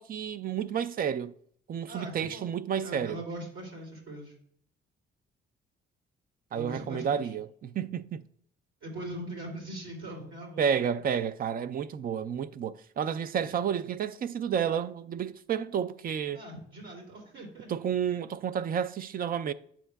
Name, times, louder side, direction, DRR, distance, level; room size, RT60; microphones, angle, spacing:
voice 1, 0.0-1.3 1.7-3.2 6.5-8.2 10.6-16.4 17.7-19.5, right 8 dB, 45° right, 0.4 m, -31 dB
voice 2, 1.9-2.5 2.8-4.3 6.5-7.3 8.8-10.7 16.3-17.7, right 1 dB, 90° right, 2.8 m, -41 dB
8.8 x 7.3 x 2.3 m
cardioid pair, 90°, 20 cm